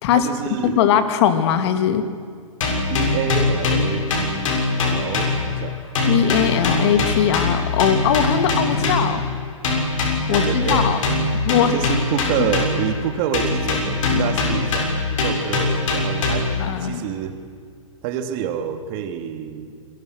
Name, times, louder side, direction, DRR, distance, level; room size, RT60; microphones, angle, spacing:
voice 1, 0.1-0.8 2.9-5.8 10.3-11.0 11.7-16.5 16.8-17.3 18.0-19.7, right 9 dB, 40° right, 6 dB, 2.8 m, -28 dB
voice 2, 0.6-2.0 6.0-9.2 10.3-11.0 11.4-11.7 16.6-17.1, left 9 dB, 50° left, 8 dB, 2.6 m, -20 dB
sound 1, 2.6-5.7 6.0-9.2 9.6-13.0 13.3-16.7, left 3 dB, 70° left, 7.2 m, -22 dB
28.0 x 23.0 x 6.6 m, 2.1 s
hypercardioid pair, 130°, 17 cm